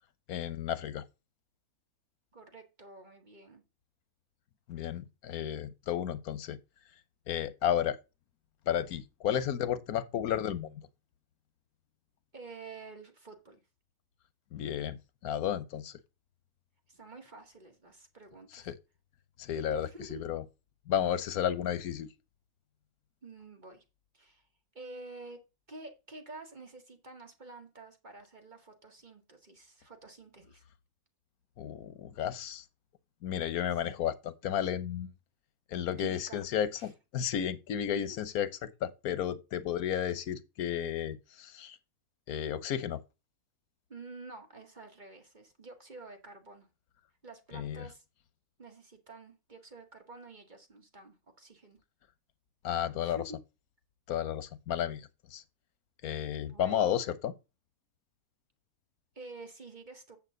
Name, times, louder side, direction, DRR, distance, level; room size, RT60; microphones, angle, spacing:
voice 1, 0.3-1.0 4.7-6.6 7.3-8.0 8.7-10.8 14.5-16.0 18.5-18.7 19.4-20.4 20.9-22.1 31.6-32.6 33.2-35.1 35.7-41.8 42.3-43.0 47.5-47.8 52.6-53.2 54.1-55.4 56.0-57.3, left 9 dB, 85° left, 1.3 m, -33 dB
voice 2, 2.3-3.6 12.3-13.6 16.9-18.7 19.7-20.3 23.2-23.8 24.1-24.5 24.7-25.4 25.7-30.6 33.8-34.0 36.0-36.5 36.8-36.9 43.9-46.7 47.2-48.0 48.6-51.8 53.0-53.2 56.5-56.8 59.1-60.2, right 3 dB, 30° right, 1.9 m, -49 dB
8.5 x 7.4 x 3.8 m
omnidirectional pair, 1.5 m